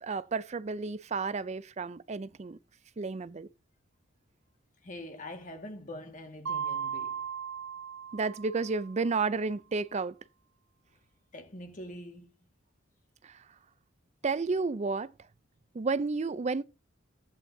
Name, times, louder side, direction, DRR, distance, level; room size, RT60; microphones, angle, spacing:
voice 1, 0.0-2.6 3.0-3.5 8.1-10.1 13.2-13.3 14.2-15.1 15.7-16.6, right 4 dB, 35° right, 0.4 m, -31 dB
voice 2, 4.8-7.2 11.3-12.3, left 1 dB, 35° left, 1.9 m, -44 dB
Mallet percussion, 6.5-9.1, right 7 dB, 60° right, 0.7 m, -37 dB
15.0 x 9.0 x 2.7 m
head